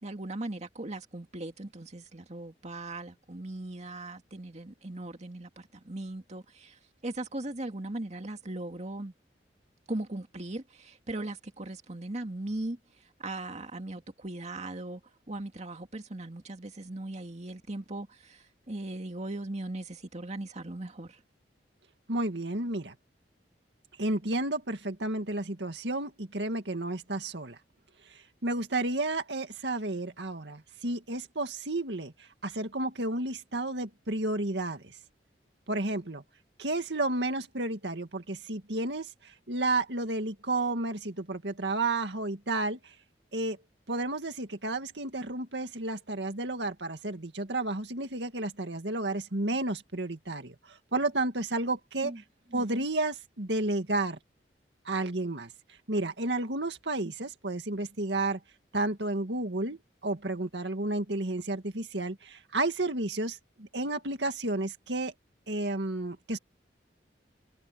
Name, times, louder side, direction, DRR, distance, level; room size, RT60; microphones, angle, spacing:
voice 1, 0.0-9.1 9.9-12.8 13.2-15.0 15.3-21.2 52.0-52.2 52.5-52.9, right 2 dB, 40° right, 2.2 m, -39 dB
voice 2, 22.1-22.9 24.0-27.6 28.1-34.9 35.7-36.2 36.6-42.9 43.3-43.6 43.9-52.1 52.5-54.2 54.9-55.5 55.9-58.4 58.7-65.1 65.5-66.4, right 2 dB, 75° right, 2.1 m, -32 dB
head